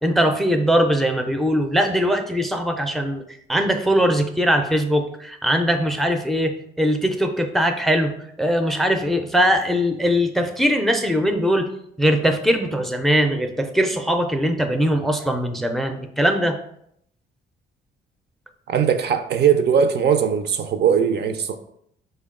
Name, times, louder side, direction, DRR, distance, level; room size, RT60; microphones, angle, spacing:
voice 1, 0.0-11.7 12.0-16.6, equal, ahead, 5 dB, 0.4 m, -21 dB
voice 2, 18.7-21.6, right 7 dB, 55° right, 8 dB, 0.4 m, -19 dB
5.0 x 2.2 x 3.6 m, 0.71 s
cardioid pair, 90°, 20 cm